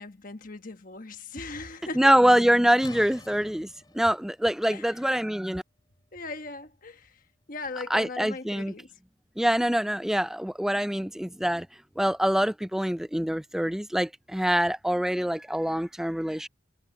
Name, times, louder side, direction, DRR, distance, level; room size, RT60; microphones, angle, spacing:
voice 1, 0.0-2.1 4.7-5.0 6.1-8.9, left 3 dB, 45° left, 1.3 m, -39 dB
voice 2, 2.0-3.7 3.9-5.6 7.9-8.7 9.4-11.7 12.0-16.5, equal, ahead, 0.3 m, -24 dB
sound 1, 2.8-8.4, left 2 dB, 25° left, 2.5 m, -51 dB
head